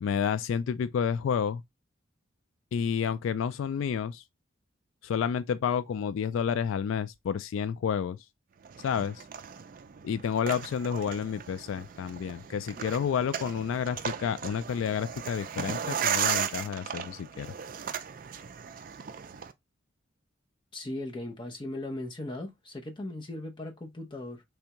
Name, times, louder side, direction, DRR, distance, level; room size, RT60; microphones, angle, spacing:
voice 1, 0.0-1.6 2.7-4.2 5.0-8.2 8.8-9.2 10.0-17.5, left 7 dB, 80° left, 0.3 m, -30 dB
sound 1, 8.6-19.5, right 8 dB, 45° right, 0.4 m, -36 dB
voice 2, 20.7-24.4, left 1 dB, 25° left, 0.8 m, -38 dB
3.4 x 3.3 x 2.9 m
head